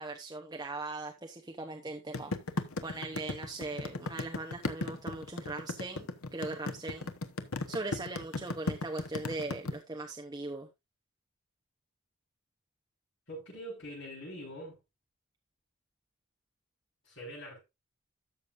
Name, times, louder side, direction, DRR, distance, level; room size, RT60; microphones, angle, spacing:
voice 1, 0.0-2.3 2.8-7.1 7.7-10.7, right 2 dB, 20° right, 0.8 m, -40 dB
sound 1, 2.1-9.7, left 2 dB, 85° left, 1.0 m, -35 dB
voice 2, 13.3-14.8 17.0-17.6, equal, 60° left, 6.2 m, -44 dB
13.0 x 6.9 x 2.6 m
head